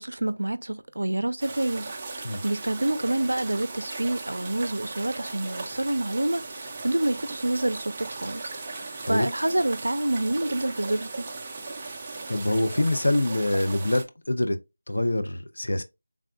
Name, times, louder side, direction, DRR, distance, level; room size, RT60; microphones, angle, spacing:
voice 1, 0.0-1.9 2.2-8.4 8.7-11.3, right 1 dB, 85° right, 0.4 m, -27 dB
sound 1, 1.4-14.0, right 3 dB, 15° right, 0.4 m, -38 dB
voice 2, 12.3-14.6 14.9-15.8, left 1 dB, 65° left, 0.6 m, -25 dB
3.5 x 2.5 x 2.3 m
figure-of-eight pair, 175°, 0 cm